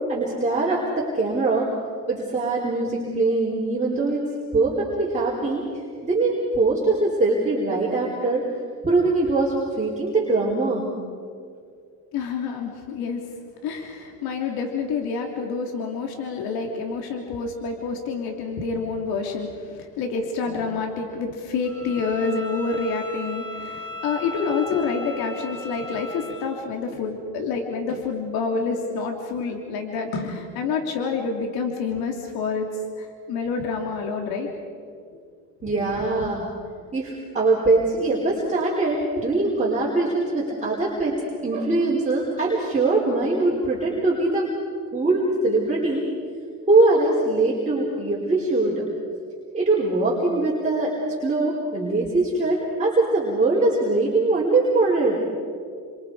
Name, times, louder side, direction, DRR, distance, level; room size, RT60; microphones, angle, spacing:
voice 1, 0.1-1.7 2.1-4.3 4.5-5.6 6.0-8.4 8.8-10.9 18.6-18.7 35.6-36.5 36.9-44.5 44.9-46.0 46.7-48.8 49.5-50.9 51.2-55.2, right 2 dB, 20° right, -5 dB, 4.6 m, -22 dB
voice 2, 12.1-13.3 13.6-32.7 33.0-34.5, left 4 dB, 70° left, 2 dB, 3.3 m, -28 dB
Bowed string instrument, 21.6-26.5, left 3 dB, 55° left, 7.6 m, -37 dB
29.0 x 26.0 x 5.0 m, 2.2 s
cardioid pair, 115°, 38 cm